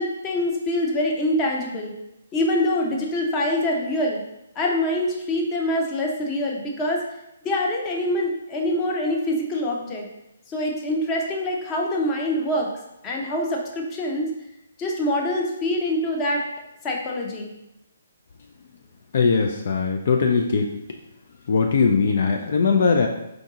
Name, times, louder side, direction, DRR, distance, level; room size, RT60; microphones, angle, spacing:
voice 1, 0.0-1.9 2.3-4.2 4.6-7.0 7.4-10.1 10.5-12.7 13.0-14.3 14.8-16.4 16.8-17.5, left 1 dB, 20° left, 0 dB, 0.8 m, -25 dB
voice 2, 19.1-20.7 21.5-23.1, left 5 dB, 55° left, 3 dB, 0.4 m, -20 dB
4.6 x 2.6 x 3.7 m, 0.87 s
hypercardioid pair, 145°, 0 cm